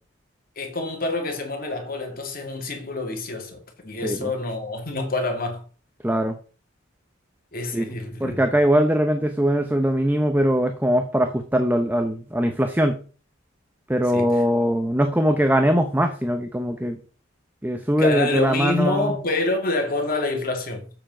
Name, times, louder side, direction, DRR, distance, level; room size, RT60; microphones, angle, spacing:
voice 1, 0.6-5.6 7.5-8.4 14.1-14.4 18.0-20.9, left 2 dB, 45° left, 2.5 m, -27 dB
voice 2, 6.0-6.4 7.7-13.0 13.9-17.0 17.6-19.2, equal, 10° right, 0.8 m, -21 dB
7.7 x 6.9 x 6.2 m
head